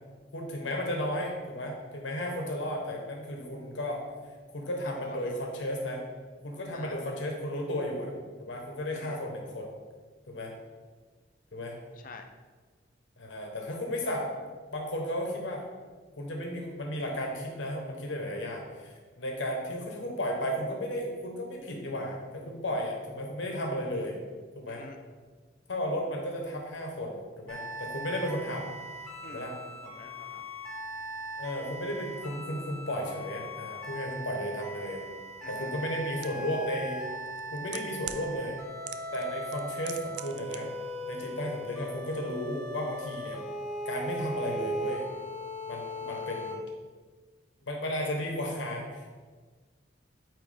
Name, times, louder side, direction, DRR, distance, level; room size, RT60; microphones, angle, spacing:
voice 1, 0.3-4.0 4.5-6.0 6.4-8.1 8.4-9.7 10.3-10.5 11.5-11.8 13.2-14.3 14.7-15.6 16.2-24.2 24.5-24.8 25.7-28.7 29.3-29.5 31.4-35.0 35.5-37.1 37.5-38.6 39.1-40.7 41.0-43.4 43.8-45.1 45.7-46.6 47.7-49.1, equal, 80° left, 0 dB, 1.1 m, -34 dB
voice 2, 4.8-5.3 6.7-7.0 8.9-9.2 11.9-12.3 24.7-25.0 29.2-30.5 35.4-36.0 45.9-46.3, left 3 dB, 45° left, 5 dB, 0.5 m, -48 dB
sound 1, 27.5-46.5, equal, 5° left, 1.0 m, -39 dB
sound 2, 36.2-36.3 37.3-38.2 38.9-39.3 39.5-40.6 40.8-40.9, right 12 dB, 65° right, 0.3 m, -39 dB
9.0 x 3.0 x 3.4 m, 1.4 s
head